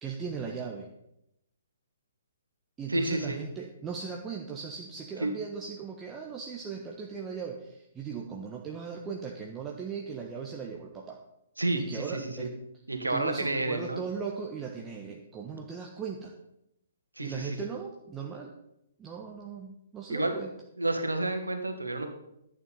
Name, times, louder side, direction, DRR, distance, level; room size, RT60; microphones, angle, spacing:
voice 1, 0.0-0.9 2.8-11.2 11.7-12.5 13.1-16.3 17.2-18.5 19.0-20.5, right 6 dB, 15° right, 0 dB, 1.3 m, -38 dB
voice 2, 2.9-3.4 5.2-5.4 11.6-12.5 12.9-14.0 17.2-17.6 20.1-20.4 20.8-22.1, right 2 dB, 80° right, 6 dB, 2.0 m, -30 dB
11.0 x 9.0 x 5.5 m, 0.81 s
figure-of-eight pair, 125°, 0 cm